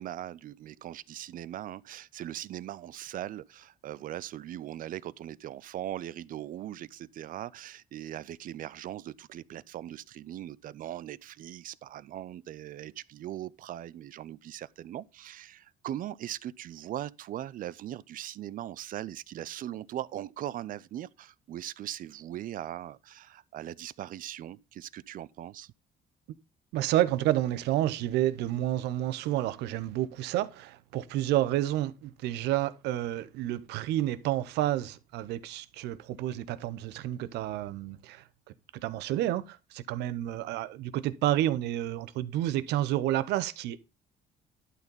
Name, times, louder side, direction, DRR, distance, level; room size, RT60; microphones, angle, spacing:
voice 1, 0.0-25.7, right 12 dB, 55° right, 0.5 m, -40 dB
voice 2, 26.7-38.2 38.7-43.8, right 13 dB, 85° right, 0.8 m, -30 dB
11.5 x 4.1 x 5.3 m
cardioid pair, 110°, 17 cm